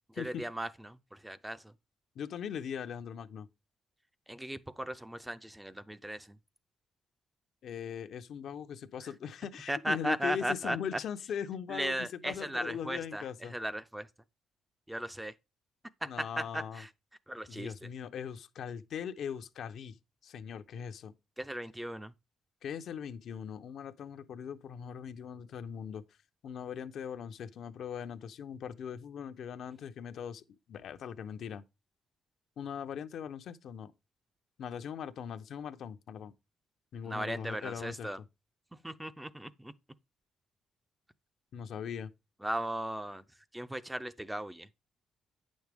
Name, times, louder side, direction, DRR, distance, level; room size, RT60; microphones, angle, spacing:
voice 1, 0.2-1.7 4.3-6.4 9.7-10.8 11.7-13.2 13.5-14.1 14.9-15.3 16.0-16.9 17.3-17.7 21.4-22.1 37.0-38.2 38.8-39.7 42.4-43.2 43.5-44.7, right 1 dB, 10° right, 0.5 m, -37 dB
voice 2, 2.2-3.5 7.6-13.5 16.0-16.8 17.5-20.0 20.2-21.1 22.6-26.0 26.4-30.4 30.7-31.6 32.6-33.9 34.6-36.3 36.9-38.1 41.5-42.1, left 8 dB, 70° left, 0.7 m, -40 dB
8.8 x 6.3 x 3.5 m
cardioid pair, 90°, 0 cm